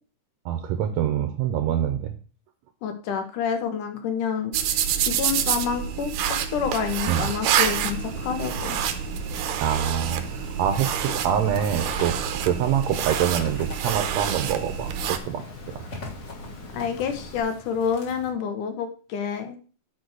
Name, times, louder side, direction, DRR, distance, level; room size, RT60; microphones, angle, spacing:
voice 1, 0.5-2.2 7.1-7.3 9.6-15.4 15.7-15.8, right 9 dB, 70° right, 8 dB, 1.9 m, -25 dB
voice 2, 2.8-4.6 5.0-8.8 16.7-19.6, left 7 dB, 75° left, 7 dB, 2.7 m, -28 dB
sound 1, 4.5-15.2, right 9 dB, 85° right, 2.4 m, -27 dB
Water, 7.4-17.4, left 2 dB, 50° left, 2.8 m, -42 dB
sound 2, 7.6-18.3, left 3 dB, 25° left, 1.9 m, -44 dB
9.2 x 4.5 x 6.2 m, 0.37 s
omnidirectional pair, 3.7 m